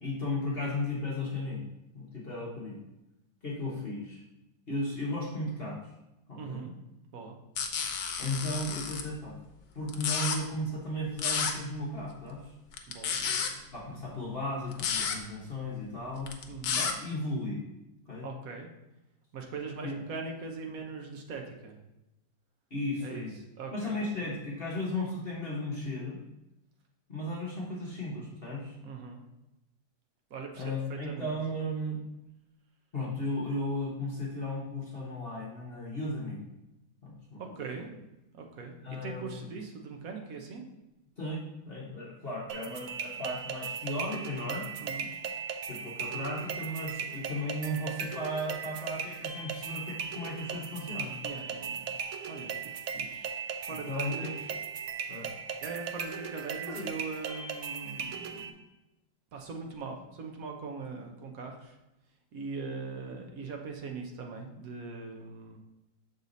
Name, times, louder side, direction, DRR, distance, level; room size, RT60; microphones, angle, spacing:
voice 1, 0.0-1.6 1.9-2.8 3.4-4.2 4.7-5.8 6.3-6.6 8.2-9.3 9.7-12.5 13.7-16.3 16.7-17.6 18.1-18.3 19.8-19.9 22.7-23.3 23.7-26.2 27.1-28.8 30.5-32.0 32.9-36.4 37.0-37.4 38.8-39.4 41.2-44.6 45.7-51.2 53.7-54.4 55.1-55.3 56.7-56.9 63.1-63.2, left 1 dB, 35° left, -5 dB, 1.3 m, -35 dB
voice 2, 6.3-6.8 7.1-7.4 12.9-13.7 16.5-16.9 18.2-18.7 19.3-21.8 23.0-24.3 28.8-29.2 30.3-31.3 37.4-37.9 38.3-40.6 44.8-45.1 51.2-53.3 53.6-54.5 55.0-55.1 55.6-58.6 59.3-61.8 62.3-65.6, right 4 dB, 60° right, 2 dB, 1.3 m, -41 dB
sound 1, 7.6-9.0 9.9-10.4 11.2-11.5 12.7-13.5 14.7-15.2 16.2-16.9, left 6 dB, 80° left, 1.3 m, -31 dB
sound 2, 42.5-58.5, right 6 dB, 75° right, 0.7 m, -38 dB
6.6 x 4.2 x 4.0 m, 0.93 s
omnidirectional pair, 1.9 m